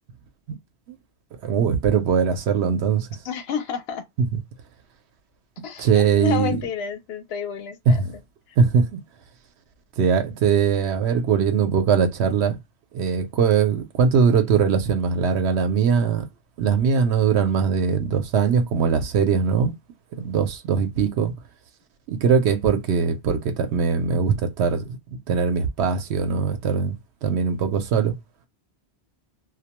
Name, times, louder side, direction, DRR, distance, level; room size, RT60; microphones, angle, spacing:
voice 1, 1.4-3.1 4.3-4.4 5.8-6.6 7.9-8.0 8.6-9.0 10.0-12.6 12.9-16.3 16.6-19.7 20.2-21.3 22.1-27.0 27.2-28.1, right 6 dB, 85° right, 0.9 m, -21 dB
voice 2, 3.2-4.0 5.6-8.2, left 7 dB, 70° left, 0.8 m, -30 dB
2.2 x 2.1 x 2.8 m
omnidirectional pair, 1.1 m